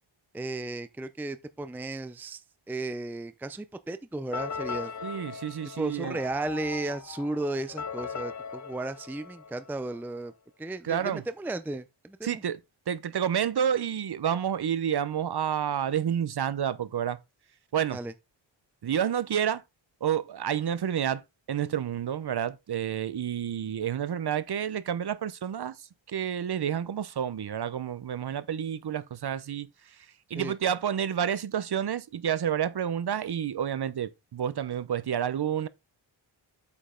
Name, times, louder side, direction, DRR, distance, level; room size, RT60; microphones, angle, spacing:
voice 1, 0.3-4.9 5.8-10.3 10.6-12.4 17.9-18.1 30.3-30.5, right 2 dB, 5° right, 0.5 m, -34 dB
sound 1, 4.3-10.1, left 6 dB, 40° left, 0.6 m, -39 dB
voice 2, 5.0-6.2 10.8-11.2 12.2-12.6 12.9-17.2 17.7-18.0 18.8-19.6 20.0-21.2 21.5-30.0 30.3-35.7, right 9 dB, 55° right, 0.7 m, -29 dB
8.4 x 5.2 x 3.7 m
wide cardioid pair, 120°, 47 cm